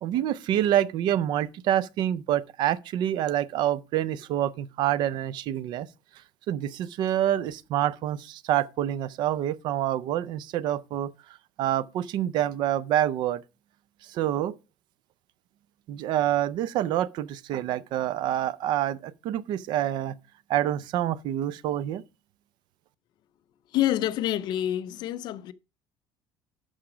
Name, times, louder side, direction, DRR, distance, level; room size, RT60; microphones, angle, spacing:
voice 1, 0.0-5.9 6.5-11.1 11.6-13.4 14.1-14.5 15.9-20.1 20.5-22.0, right 12 dB, 50° right, 0.5 m, -27 dB
voice 2, 23.7-25.5, left 12 dB, 50° left, 0.5 m, -27 dB
11.5 x 4.9 x 4.9 m
cardioid pair, 170°, 10 cm